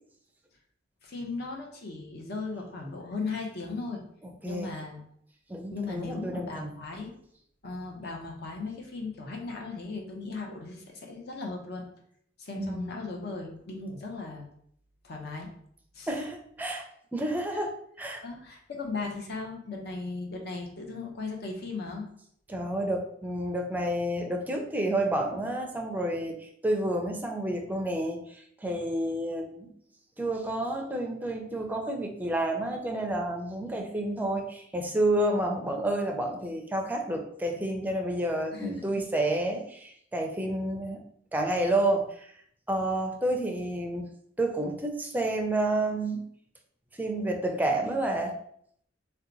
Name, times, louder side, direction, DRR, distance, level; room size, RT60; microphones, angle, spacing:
voice 1, 1.0-4.0 4.4-5.0 5.7-7.1 7.6-11.9 12.4-14.5 15.0-15.5 15.9-16.1 18.2-22.1 38.5-39.0, left 3 dB, 60° left, 1 dB, 0.7 m, -37 dB
voice 2, 5.5-6.7 12.6-12.9 16.1-16.8 17.1-18.2 22.5-29.7 30.2-41.0 41.3-42.0 42.7-44.1 44.4-46.2 47.0-48.3, right 1 dB, 10° right, 2 dB, 0.4 m, -30 dB
2.8 x 2.2 x 3.9 m, 0.66 s
head